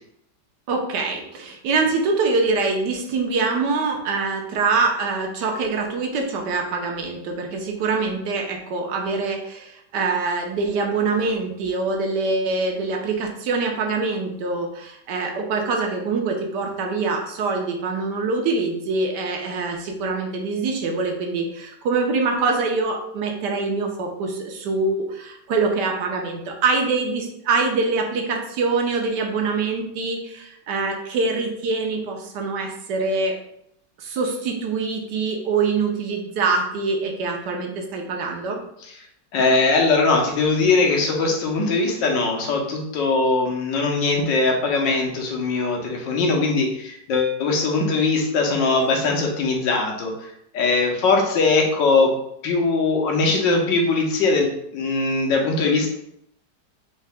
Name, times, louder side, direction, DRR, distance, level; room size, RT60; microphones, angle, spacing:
voice 1, 0.7-33.3 34.0-38.6, right 4 dB, 75° right, 2 dB, 1.3 m, -24 dB
voice 2, 39.3-52.1 52.4-55.9, left 3 dB, 90° left, 1 dB, 1.5 m, -21 dB
4.0 x 2.8 x 3.4 m, 0.75 s
omnidirectional pair, 1.9 m